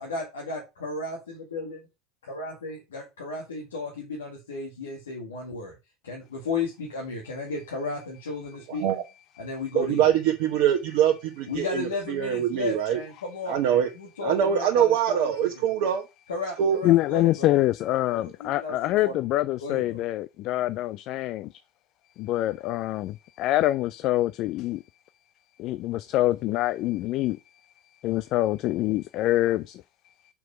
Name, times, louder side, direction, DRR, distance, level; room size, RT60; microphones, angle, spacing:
voice 1, 0.0-1.8 2.3-5.7 6.0-8.9 9.4-10.1 11.5-15.5 16.3-17.5 18.2-19.2 19.6-20.0, left 3 dB, 80° left, 2.0 m, -34 dB
voice 2, 9.7-13.0 13.5-13.9 14.2-16.0 16.6-16.8, right 9 dB, 60° right, 1.0 m, -23 dB
voice 3, 16.8-21.6 22.2-24.8 25.6-27.4 28.0-29.8, left 15 dB, 50° left, 0.4 m, -25 dB
6.1 x 4.7 x 5.1 m
hypercardioid pair, 75°, 0 cm